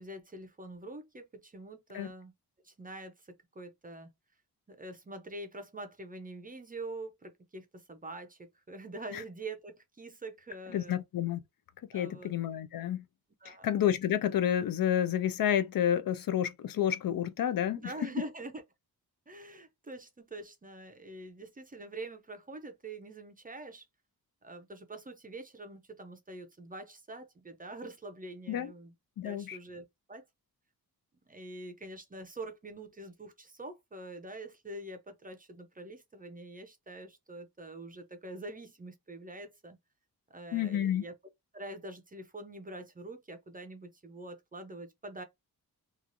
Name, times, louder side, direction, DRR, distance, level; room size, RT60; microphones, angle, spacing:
voice 1, 0.0-2.3 2.6-4.1 4.7-11.0 11.9-12.3 13.4-13.7 17.8-18.6 19.3-23.8 24.4-28.9 29.2-30.2 31.3-39.8 40.3-41.1 41.5-45.2, right 2 dB, 25° right, 0.5 m, -45 dB
voice 2, 10.7-11.4 11.9-13.0 13.5-18.1 28.5-28.7 29.2-29.6 40.5-41.0, left 10 dB, 65° left, 0.5 m, -30 dB
3.0 x 2.4 x 2.5 m
wide cardioid pair, 155°, 38 cm